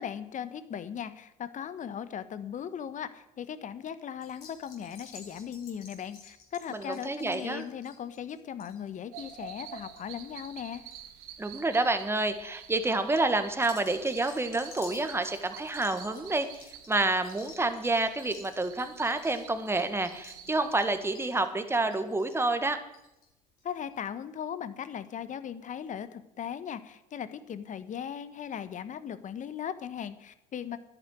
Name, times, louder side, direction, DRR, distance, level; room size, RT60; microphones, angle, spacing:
voice 1, 0.0-10.8 23.6-30.8, left 8 dB, 45° left, 13 dB, 1.3 m, -38 dB
sound 1, 4.2-11.0 11.3-11.8 12.3-12.6 13.5-23.3 23.6-23.7 23.9-24.0, left 5 dB, 60° left, 4.2 m, -52 dB
voice 2, 7.1-7.6 11.4-22.8, right 2 dB, 15° right, 9 dB, 1.7 m, -28 dB
sound 2, 9.1-21.2, right 10 dB, 75° right, 1.4 m, -48 dB
11.0 x 10.0 x 9.2 m, 0.91 s
hypercardioid pair, 65°, 18 cm